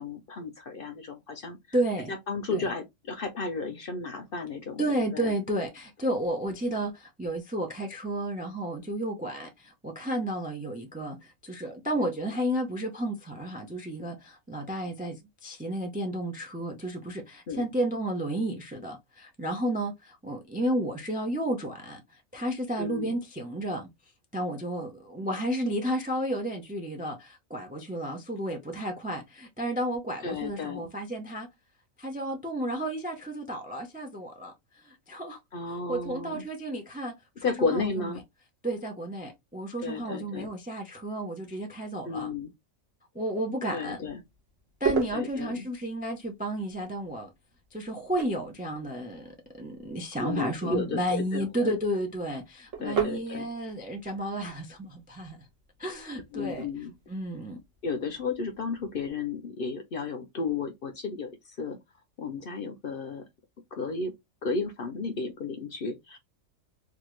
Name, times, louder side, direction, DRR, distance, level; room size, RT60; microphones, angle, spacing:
voice 1, 0.0-1.6 2.1-5.3 17.5-17.6 22.8-23.1 30.2-30.9 35.5-36.4 37.4-38.2 39.8-40.5 42.0-42.5 43.7-44.2 45.1-45.7 50.2-51.8 52.8-53.5 56.3-56.9 57.8-61.8 62.2-63.2 63.7-64.1 64.4-66.2, left 4 dB, 55° left, 0.7 m, -33 dB
voice 2, 1.7-2.1 2.5-2.6 4.8-11.2 11.4-22.0 22.3-23.9 24.3-31.5 32.0-34.5 34.9-35.4 35.9-38.1 38.6-42.3 43.1-44.0 44.8-47.3 47.7-55.4 55.8-56.7 57.1-57.6, right 1 dB, 15° right, 0.3 m, -32 dB
sound 1, 43.9-59.1, right 7 dB, 70° right, 1.3 m, -39 dB
3.5 x 2.4 x 3.0 m
omnidirectional pair, 1.4 m